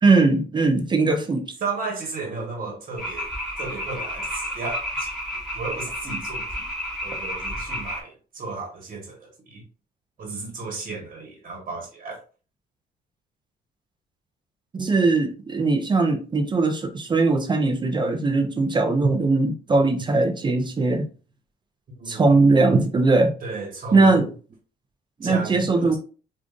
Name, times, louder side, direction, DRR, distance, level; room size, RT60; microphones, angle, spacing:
voice 1, 0.0-1.5 14.7-21.1 22.1-23.3 23.9-24.3 25.2-26.0, right 3 dB, 25° right, 0.5 m, -20 dB
voice 2, 1.6-3.3 3.6-5.1 5.5-6.7 7.0-9.6 10.2-12.2 22.0-22.4 23.4-24.3 25.2-26.0, right 3 dB, 45° right, 1.2 m, -34 dB
sound 1, 3.0-8.0, equal, ahead, 2.0 m, -31 dB
5.0 x 2.5 x 2.4 m
cardioid pair, 115°, 18 cm